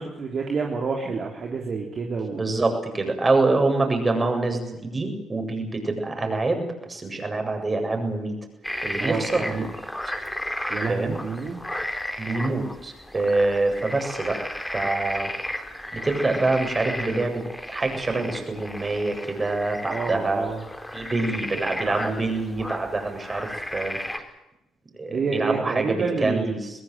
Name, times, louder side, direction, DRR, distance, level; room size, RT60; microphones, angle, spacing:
voice 1, 0.0-2.5 9.0-9.7 10.7-11.6 19.9-20.6 25.1-26.5, right 4 dB, 45° right, 1 dB, 3.6 m, -28 dB
voice 2, 2.4-8.3 8.8-9.6 10.9-11.2 12.2-14.4 14.7-15.3 15.9-17.4 17.7-20.5 20.9-24.0 24.9-26.7, right 3 dB, 25° right, 5 dB, 7.8 m, -25 dB
sound 1, 8.6-24.2, left 1 dB, 10° left, 4.0 m, -34 dB
21.5 x 21.5 x 8.1 m, 0.88 s
figure-of-eight pair, 45°, 0 cm